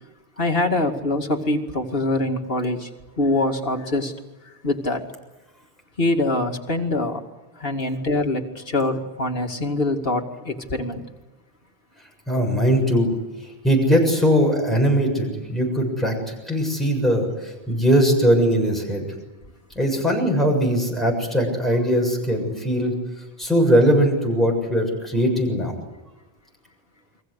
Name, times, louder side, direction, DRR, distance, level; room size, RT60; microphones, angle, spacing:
voice 1, 0.4-2.9 3.2-4.1 4.4-5.0 6.0-7.2 7.6-11.0, left 2 dB, 65° left, 3 dB, 2.6 m, -24 dB
voice 2, 12.3-13.1 13.6-19.1 19.8-22.9 23.4-25.8, equal, ahead, 0 dB, 7.1 m, -20 dB
30.0 x 23.0 x 8.2 m, 1.1 s
omnidirectional pair, 1.1 m